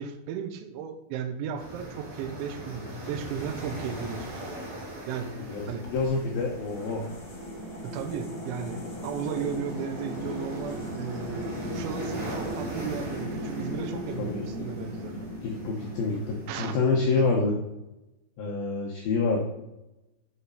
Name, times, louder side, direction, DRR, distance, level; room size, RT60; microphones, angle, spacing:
voice 1, 0.0-4.6 4.8-5.9 7.8-15.3 16.5-16.8 17.2-17.3, right 7 dB, 80° right, 8 dB, 2.9 m, -35 dB
sound 1, 1.6-16.8, equal, 25° right, 2.6 m, -41 dB
voice 2, 5.5-7.0 14.2-14.4 15.4-17.5 18.4-19.4, left 4 dB, 85° left, -1 dB, 2.0 m, -27 dB
sound 2, 5.8-16.9, left 1 dB, 35° left, 1.9 m, -37 dB
8.0 x 7.3 x 5.4 m, 0.97 s
omnidirectional pair, 5.8 m